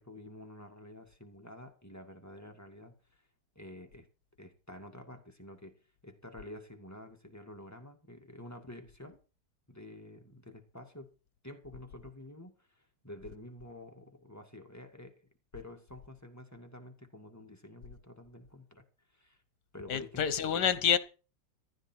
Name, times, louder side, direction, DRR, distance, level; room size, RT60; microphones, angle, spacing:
voice 1, 0.0-3.3 3.6-4.1 4.4-9.2 9.7-11.1 11.4-15.2 15.5-18.8 19.1-19.4 19.7-20.3, left 1 dB, 10° left, 2.0 m, -49 dB
voice 2, 19.9-21.0, left 9 dB, 70° left, 1.6 m, -28 dB
14.5 x 13.0 x 4.6 m
omnidirectional pair, 1.9 m